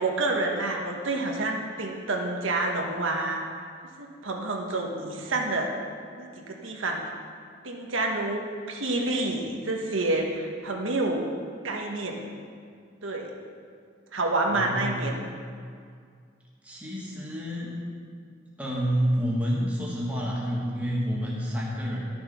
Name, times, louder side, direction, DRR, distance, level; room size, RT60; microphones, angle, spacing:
voice 1, 0.0-3.4 4.2-5.7 6.1-7.0 7.6-11.3 11.6-12.2 13.0-13.3 14.1-15.2, right 2 dB, 75° right, 1 dB, 1.2 m, -28 dB
voice 2, 14.5-15.1 16.6-17.7 18.6-22.0, equal, 5° right, -5 dB, 1.7 m, -29 dB
11.5 x 6.8 x 5.5 m, 2.1 s
head